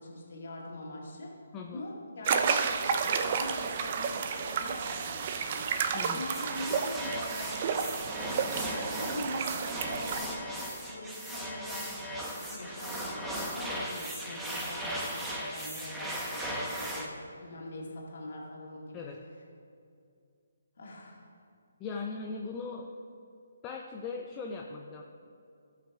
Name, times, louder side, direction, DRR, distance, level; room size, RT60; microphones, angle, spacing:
voice 1, 0.0-1.3 1.6-7.6 8.7-19.1 20.8-21.3, left 1 dB, 60° left, -2 dB, 2.1 m, -43 dB
sound 1, 2.2-10.2, right 6 dB, 40° right, 0.6 m, -31 dB
voice 2, 5.9-6.2 18.9-19.2 21.8-22.9 23.6-25.0, left 4 dB, 20° left, 1 dB, 0.6 m, -39 dB
sound 2, 6.3-17.1, equal, 5° right, 1.0 m, -37 dB
14.5 x 5.8 x 3.5 m, 2.4 s
figure-of-eight pair, 150°, 0 cm